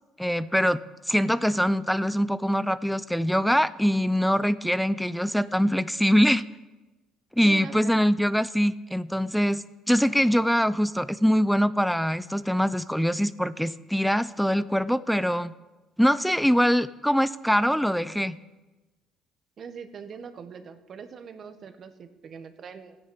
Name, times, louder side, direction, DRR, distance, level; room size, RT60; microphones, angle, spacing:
voice 1, 0.2-0.8 1.1-6.4 7.4-15.5 16.0-18.4, equal, ahead, 16 dB, 0.6 m, -23 dB
voice 2, 7.4-8.0 19.6-23.0, right 6 dB, 50° right, 9 dB, 1.5 m, -42 dB
14.0 x 10.0 x 8.7 m, 1.1 s
supercardioid pair, 80°, 0 cm